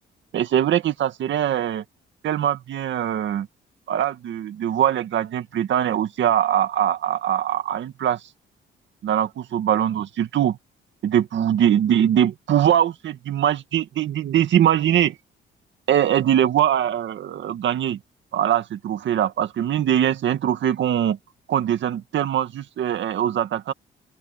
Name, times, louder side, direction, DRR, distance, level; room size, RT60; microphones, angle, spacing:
voice 1, 0.3-1.8 2.2-3.5 3.9-8.2 9.0-10.6 11.0-15.2 15.9-18.0 18.3-21.2 21.5-23.7, right 10 dB, 70° right, 2.0 m, -22 dB
open air
cardioid pair, 90°, 20 cm